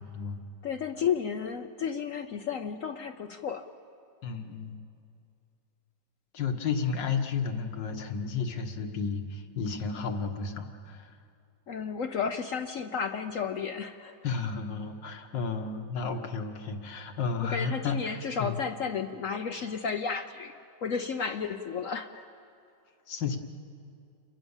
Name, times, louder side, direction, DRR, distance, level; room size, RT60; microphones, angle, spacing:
voice 1, 0.1-0.4 4.2-4.8 6.3-11.2 14.2-18.6 23.1-23.4, left 5 dB, 80° left, 6 dB, 2.1 m, -32 dB
voice 2, 0.6-3.7 11.7-14.2 17.5-20.5 20.8-22.2, left 6 dB, 60° left, 7 dB, 0.9 m, -32 dB
29.5 x 22.5 x 7.2 m, 2.5 s
omnidirectional pair, 1.9 m